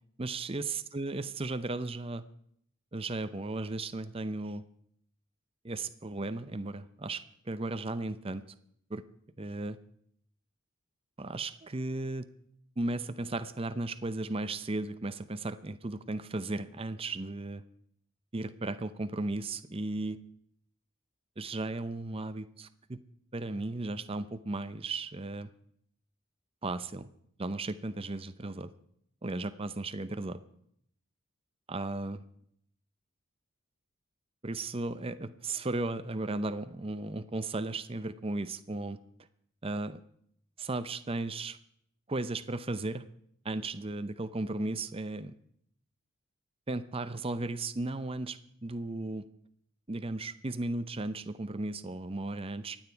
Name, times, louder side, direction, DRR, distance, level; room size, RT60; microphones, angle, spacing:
voice 1, 0.2-2.2 2.9-4.6 5.6-8.4 8.9-9.0 9.4-9.8 11.2-12.3 12.8-17.6 18.3-20.2 21.4-23.0 23.3-25.5 26.6-27.1 27.4-28.7 29.2-30.4 31.7-32.2 34.4-39.0 39.6-40.0 40.6-41.6 42.1-43.0 43.4-45.3 46.7-49.3 49.9-52.8, right 2 dB, 25° right, 12 dB, 0.7 m, -35 dB
24.5 x 9.0 x 4.6 m, 0.68 s
head